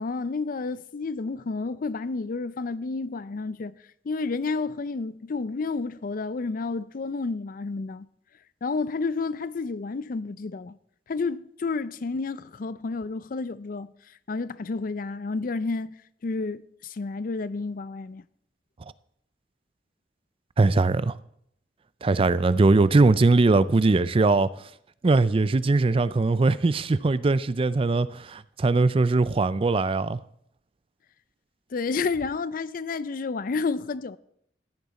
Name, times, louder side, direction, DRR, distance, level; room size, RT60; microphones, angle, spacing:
voice 1, 0.0-3.7 4.0-8.1 8.6-10.8 11.1-13.9 14.3-15.9 16.2-18.2 31.7-34.2, left 4 dB, 50° left, 0.5 m, -30 dB
voice 2, 20.6-21.1 22.0-24.5 25.0-30.2, right 3 dB, 30° right, 0.4 m, -21 dB
14.0 x 10.5 x 4.2 m
head